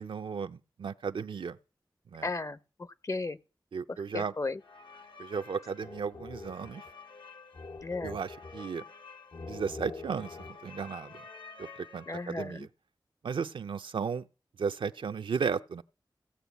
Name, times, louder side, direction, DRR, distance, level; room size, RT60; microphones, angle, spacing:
voice 1, 0.0-1.6 2.1-2.3 3.7-4.3 5.2-6.8 8.0-8.8 9.5-11.1 11.6-12.7 13.2-14.3 14.6-15.8, right 6 dB, 85° right, 0.5 m, -35 dB
voice 2, 2.2-3.4 3.9-4.6 7.8-8.2 12.1-12.7, left 3 dB, 40° left, 0.6 m, -35 dB
sound 1, 4.6-12.5, left 4 dB, 80° left, 1.1 m, -46 dB
16.0 x 5.4 x 8.3 m
cardioid pair, 45°, 8 cm